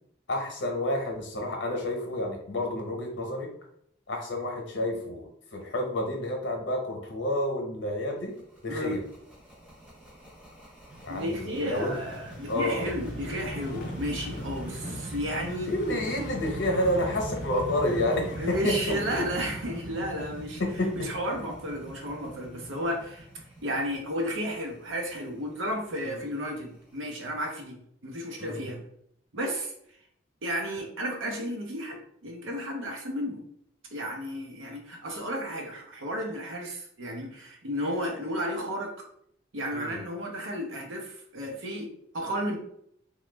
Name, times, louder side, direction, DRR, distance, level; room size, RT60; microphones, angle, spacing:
voice 1, 0.3-3.5 4.1-8.3 8.6-9.0 11.0-12.0 12.5-12.9 15.6-18.9 19.9-20.1 20.6-21.1 26.0-26.2 28.4-28.6 39.7-40.0, left 1 dB, 70° left, 2 dB, 0.8 m, -29 dB
sound 1, 8.2-26.9, right 1 dB, 5° right, 0.6 m, -41 dB
voice 2, 8.7-9.0 11.1-15.7 18.4-20.6 21.0-23.3 23.6-28.8 29.3-29.7 30.4-33.4 33.9-38.9 39.5-42.6, equal, 85° right, 2 dB, 0.7 m, -33 dB
sound 2, 12.7-19.8, left 1 dB, 50° left, 0.4 m, -43 dB
3.0 x 2.3 x 3.2 m, 0.70 s
head